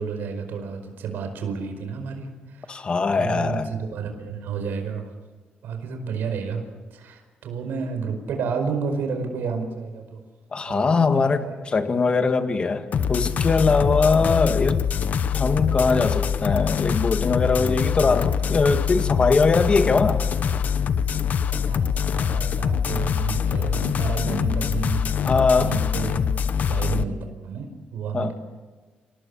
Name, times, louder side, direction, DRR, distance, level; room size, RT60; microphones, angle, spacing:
voice 1, 0.0-2.8 3.2-5.1 5.6-6.6 6.9-10.2 10.7-11.6 21.5-25.1 25.5-26.4 26.7-27.2 27.4-28.3, right 5 dB, 90° right, 5 dB, 4.9 m, -31 dB
voice 2, 2.7-3.7 10.5-14.8 15.3-20.2 25.2-25.7 28.1-28.3, left 4 dB, 30° left, 7 dB, 1.8 m, -21 dB
sound 1, 12.9-27.0, left 7 dB, 55° left, 1.0 m, -24 dB
28.5 x 18.5 x 7.1 m, 1.4 s
cardioid pair, 135°, 3 cm